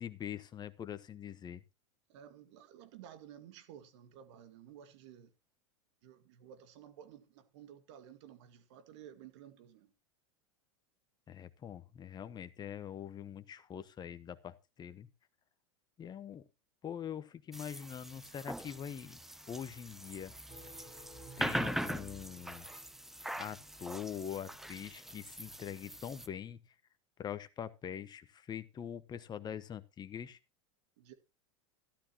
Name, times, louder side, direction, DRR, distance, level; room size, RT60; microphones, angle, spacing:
voice 1, 0.0-1.6 11.3-15.1 16.0-16.4 16.8-19.2 19.5-20.3 21.4-22.6 23.4-26.6 27.2-30.4, left 9 dB, 25° left, 1.0 m, -43 dB
voice 2, 2.1-5.3 6.0-9.9 31.0-31.1, right 10 dB, 65° right, 2.0 m, -54 dB
sound 1, 17.5-26.3, right 1 dB, ahead, 0.6 m, -42 dB
sound 2, 20.5-23.5, right 3 dB, 40° right, 5.7 m, -57 dB
13.5 x 12.5 x 2.9 m
hypercardioid pair, 105°, 16 cm